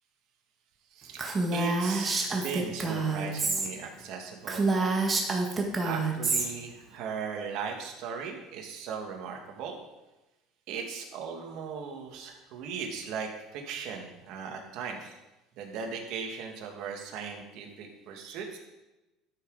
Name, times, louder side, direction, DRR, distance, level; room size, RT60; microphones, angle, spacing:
voice 1, 0.9-1.2 1.5-4.9 5.8-9.8 10.7-15.2 15.6-18.6, right 6 dB, 65° right, 2 dB, 2.2 m, -38 dB
Female speech woman speaking, 1.2-3.7 4.0-4.1 4.4-6.5, right 3 dB, 25° right, 1.8 m, -28 dB
13.0 x 6.4 x 5.0 m, 1.0 s
cardioid pair, 125°, 0 cm